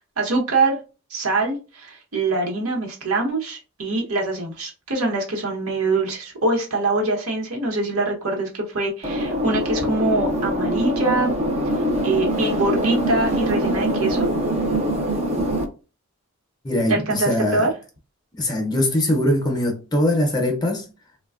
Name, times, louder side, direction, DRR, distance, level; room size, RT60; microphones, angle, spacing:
voice 1, 0.2-0.8 1.1-11.3 12.0-14.3 16.9-17.7, right 2 dB, 75° right, 0.9 m, -24 dB
sound 1, 9.0-15.6, equal, 30° right, 0.5 m, -23 dB
voice 2, 16.6-17.7 18.4-20.9, left 1 dB, 20° left, 0.6 m, -22 dB
3.3 x 2.2 x 2.3 m
head